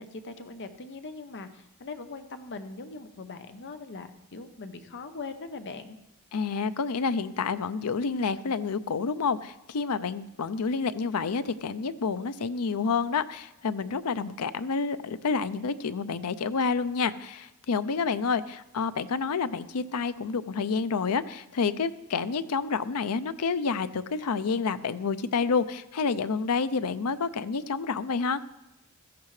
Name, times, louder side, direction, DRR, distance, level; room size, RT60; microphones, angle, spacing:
voice 1, 0.0-6.0, left 3 dB, 55° left, 9 dB, 0.8 m, -41 dB
voice 2, 6.3-28.4, left 5 dB, 85° left, 13 dB, 0.6 m, -29 dB
16.0 x 13.5 x 3.2 m, 0.94 s
head